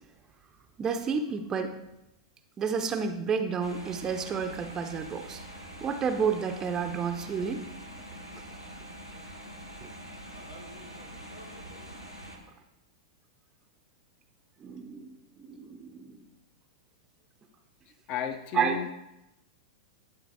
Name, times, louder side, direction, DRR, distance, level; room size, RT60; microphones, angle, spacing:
voice 1, 0.8-1.8 2.6-5.4 5.8-7.6 9.8-9.9 14.6-15.2 15.5-16.2 18.5-18.9, right 6 dB, 20° right, 6 dB, 0.6 m, -30 dB
sound 1, 3.6-12.4, equal, 90° left, 1.4 m, -44 dB
voice 2, 18.1-18.9, left 8 dB, 35° left, 10 dB, 0.7 m, -33 dB
10.5 x 4.0 x 4.5 m, 0.92 s
figure-of-eight pair, 95°, 2 cm